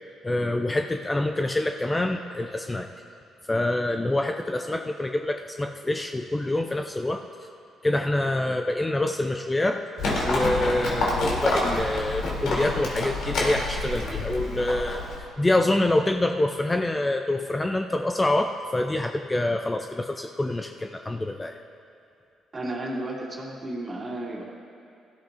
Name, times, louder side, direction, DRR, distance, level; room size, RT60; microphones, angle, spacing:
voice 1, 0.2-2.9 3.4-7.5 7.8-9.8 10.2-21.5, left 1 dB, 15° left, 5 dB, 0.5 m, -26 dB
Livestock farm animals working animals, 10.0-15.2, left 2 dB, 80° left, 3.0 m, -27 dB
voice 2, 22.5-24.5, right 1 dB, 30° right, -3 dB, 2.5 m, -33 dB
19.0 x 13.0 x 2.6 m, 2.6 s
cardioid pair, 90°, 0 cm